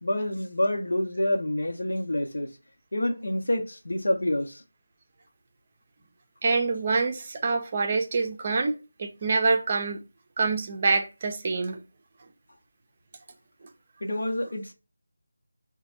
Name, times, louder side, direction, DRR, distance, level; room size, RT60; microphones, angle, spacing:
voice 1, 0.0-2.5 2.9-4.6 14.0-14.7, left 1 dB, 60° left, 0.9 m, -27 dB
voice 2, 6.4-8.7 9.0-10.0 10.4-11.8, right 4 dB, 30° right, 0.6 m, -26 dB
4.0 x 2.3 x 4.4 m
figure-of-eight pair, 160°, 0 cm